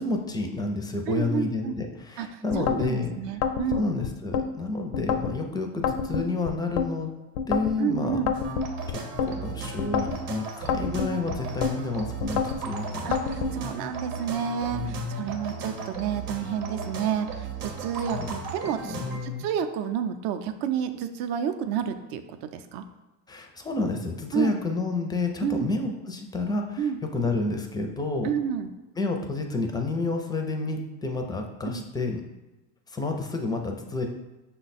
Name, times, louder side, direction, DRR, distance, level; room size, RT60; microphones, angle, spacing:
voice 1, 0.0-3.1 3.7-7.1 7.5-8.2 8.9-13.1 14.7-15.4 18.1-18.3 18.8-19.5 23.3-28.3 29.0-32.2 32.9-34.1, left 3 dB, 10° left, 3 dB, 0.4 m, -30 dB
voice 2, 1.1-1.7 2.2-3.9 7.8-8.3 13.0-19.0 19.2-22.8 24.3-24.6 25.4-25.7 26.8-27.0 28.2-28.7 31.7-31.8, right 8 dB, 55° right, 8 dB, 0.5 m, -30 dB
sound 1, 2.5-2.9 3.4-4.5 4.9-5.4 5.8-6.9 7.4-7.8 8.3-9.3 9.8-10.2 10.7-11.7 12.2-12.6 13.1-13.5, left 6 dB, 85° left, 0.6 m, -27 dB
sound 2, 8.3-19.2, right 4 dB, 90° right, 0.9 m, -36 dB
5.6 x 2.2 x 4.1 m, 1.1 s
supercardioid pair, 100°, 45 cm